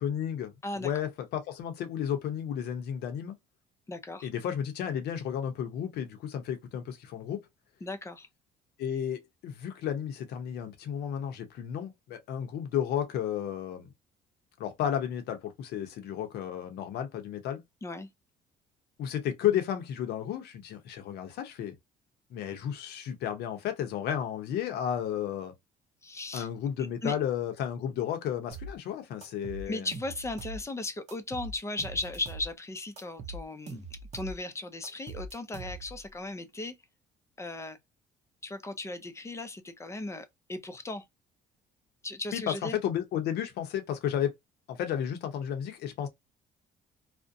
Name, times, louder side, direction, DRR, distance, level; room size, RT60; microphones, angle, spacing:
voice 1, 0.0-3.4 4.2-7.4 8.8-13.9 14.6-17.6 19.0-21.7 22.3-25.5 26.3-29.9 42.3-44.3 44.7-46.1, left 9 dB, 75° left, 0.7 m, -33 dB
voice 2, 3.9-4.3 7.8-8.3 17.8-18.1 26.0-26.5 27.0-27.1 29.7-36.8 37.4-37.8 38.4-41.0 42.0-42.8, left 2 dB, 15° left, 0.5 m, -37 dB
sound 1, 28.5-28.8 29.2-30.6 31.1-32.5 33.0-34.4 34.8-36.0, right 2 dB, 40° right, 0.7 m, -42 dB
2.5 x 2.1 x 2.6 m
cardioid pair, 110°, 17 cm